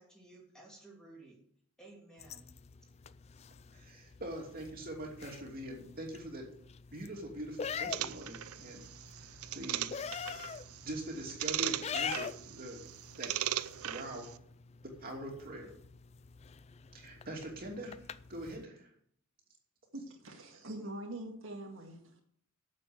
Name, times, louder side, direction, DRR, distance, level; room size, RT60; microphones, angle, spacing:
voice 1, 0.0-1.4 1.8-2.6, right 2 dB, 5° left, -3 dB, 3.0 m, -55 dB
sound 1, 2.2-18.6, left 6 dB, 30° left, 0.3 m, -45 dB
voice 2, 3.7-6.5 6.9-8.9 9.2-9.9 10.8-12.8 13.2-13.3 13.8-14.3 15.0-15.7 16.9-18.9, right 1 dB, 45° right, 0 dB, 2.7 m, -43 dB
sound 2, 7.9-14.4, right 12 dB, 90° right, 0.5 m, -39 dB
voice 3, 19.9-22.2, right 1 dB, 65° right, 0 dB, 2.1 m, -44 dB
8.9 x 7.4 x 7.9 m, 0.66 s
head